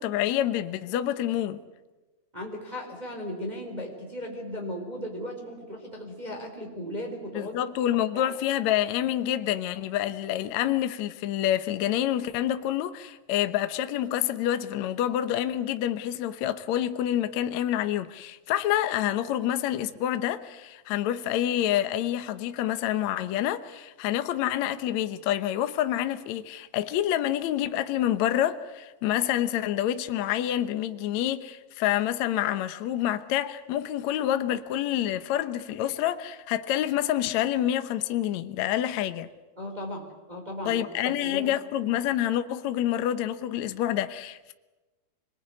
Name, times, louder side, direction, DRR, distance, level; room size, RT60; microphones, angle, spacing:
voice 1, 0.0-1.6 7.3-39.3 40.7-44.5, left 12 dB, 75° left, 1.6 m, -27 dB
voice 2, 2.3-7.5 8.1-8.3 39.6-41.5, equal, 10° right, 3.9 m, -36 dB
26.0 x 21.5 x 9.8 m
omnidirectional pair, 4.7 m